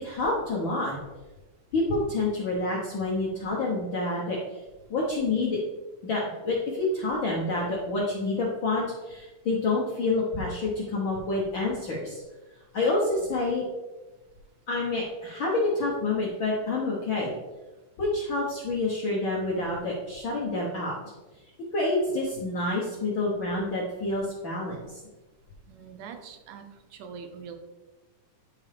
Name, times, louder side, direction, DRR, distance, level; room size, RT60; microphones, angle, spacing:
voice 1, 0.0-1.0 1.7-4.6 4.9-5.6 6.0-12.2 12.7-13.6 14.7-17.3 18.0-21.1 21.7-25.0, left 2 dB, 65° left, -5 dB, 1.2 m, -28 dB
voice 2, 25.7-26.7 26.9-27.6, right 6 dB, 80° right, 5 dB, 2.2 m, -43 dB
9.8 x 4.4 x 3.4 m, 1.2 s
omnidirectional pair, 3.7 m